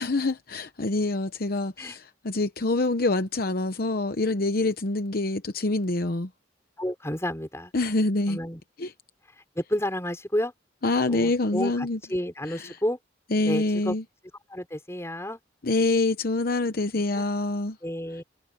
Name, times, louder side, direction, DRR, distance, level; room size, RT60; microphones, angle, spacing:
voice 1, 0.0-6.3 7.7-8.4 8.8-8.9 10.8-12.0 12.5-12.8 13.3-14.0 15.6-17.8, left 2 dB, 55° left, 0.9 m, -26 dB
voice 2, 6.8-7.7 8.3-8.6 9.6-10.5 11.1-13.0 13.5-13.9 14.5-15.4 16.9-17.2 17.8-18.2, left 1 dB, 15° left, 6.2 m, -31 dB
head